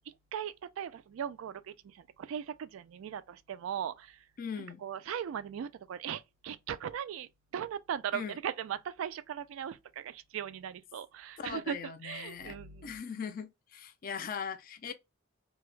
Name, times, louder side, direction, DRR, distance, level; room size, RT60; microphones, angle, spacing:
voice 1, 0.1-4.3 4.6-13.0, right 9 dB, 90° right, 0.3 m, -39 dB
voice 2, 4.4-4.8 8.1-8.4 11.4-12.6 12.8-14.9, left 6 dB, 45° left, 0.4 m, -40 dB
2.2 x 2.0 x 3.1 m
head